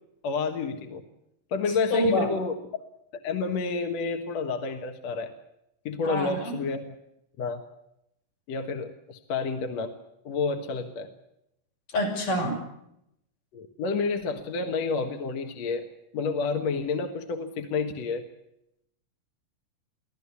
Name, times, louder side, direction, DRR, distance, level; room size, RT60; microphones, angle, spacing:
voice 1, 0.2-1.0 1.5-2.5 3.2-5.3 5.9-7.0 7.4-7.6 8.5-9.9 10.2-11.1 13.5-15.9 16.1-18.2, left 4 dB, 60° left, 5 dB, 2.5 m, -29 dB
voice 2, 1.9-2.3 6.1-6.6 11.9-12.6, equal, 80° left, 1 dB, 7.7 m, -26 dB
25.0 x 16.5 x 8.4 m, 0.79 s
omnidirectional pair, 3.7 m